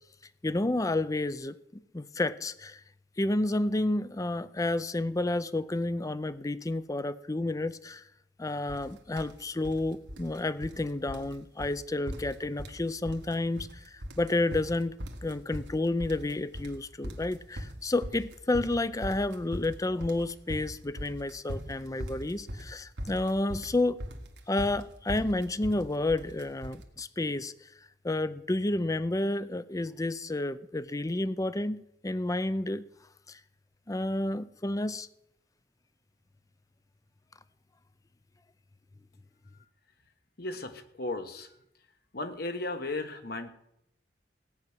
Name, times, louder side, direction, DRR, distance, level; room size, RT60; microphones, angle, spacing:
voice 1, 0.4-2.8 3.2-8.0 8.4-14.9 15.2-24.0 24.5-27.5 28.0-32.9 33.3-33.4 33.9-35.1, left 2 dB, 20° left, 0.5 m, -30 dB
sound 1, 8.7-8.9 9.2-9.8 10.1-10.8 11.1-11.3 11.6-11.8 12.1-12.8 13.1-13.7 14.0-26.8, equal, 85° right, 1.7 m, -40 dB
voice 2, 40.4-41.5 42.1-43.5, left 2 dB, 60° left, 1.4 m, -35 dB
17.0 x 6.0 x 9.4 m
head